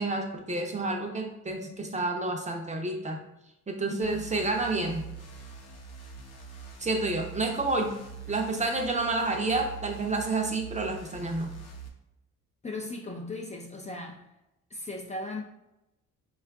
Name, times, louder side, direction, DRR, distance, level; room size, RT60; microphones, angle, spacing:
voice 1, 0.0-3.2 3.7-5.1 6.8-7.9 8.3-11.5, right 2 dB, 25° right, 2 dB, 0.6 m, -29 dB
sound 1, 4.0-11.9, right 6 dB, 55° left, 0.7 m, -44 dB
voice 2, 12.6-14.3 14.7-15.4, left 2 dB, 25° left, 0 dB, 0.5 m, -37 dB
3.6 x 2.4 x 3.4 m, 0.91 s
cardioid pair, 90°, 30 cm